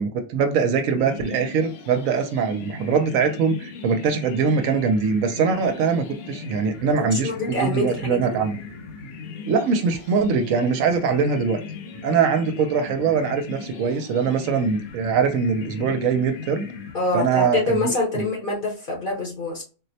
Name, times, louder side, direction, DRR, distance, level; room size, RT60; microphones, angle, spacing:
voice 1, 0.0-8.6 9.5-11.6 12.0-16.7 17.1-18.2, right 5 dB, 75° right, 0.9 m, -22 dB
sound 1, 0.9-17.5, left 5 dB, 80° left, 1.1 m, -38 dB
voice 2, 7.1-8.3 16.9-19.6, left 2 dB, 40° left, 1.0 m, -25 dB
4.1 x 2.1 x 2.7 m
omnidirectional pair, 1.5 m